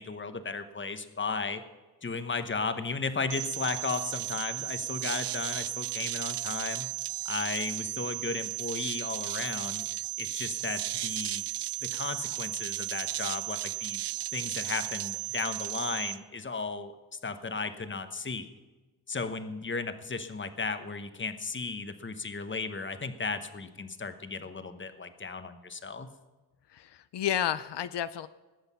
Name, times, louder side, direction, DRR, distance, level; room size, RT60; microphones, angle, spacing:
voice 1, 0.0-1.6 2.0-6.9 7.2-9.9 10.2-11.4 11.8-14.0 14.3-16.9 17.2-18.5 19.1-26.1, left 4 dB, 30° left, 10 dB, 1.0 m, -35 dB
sound 1, 3.3-16.2, right 14 dB, 85° right, 0.6 m, -35 dB
voice 2, 26.7-28.3, left 10 dB, 80° left, 13 dB, 0.6 m, -31 dB
19.5 x 8.0 x 5.6 m, 1.2 s
wide cardioid pair, 120°, 41 cm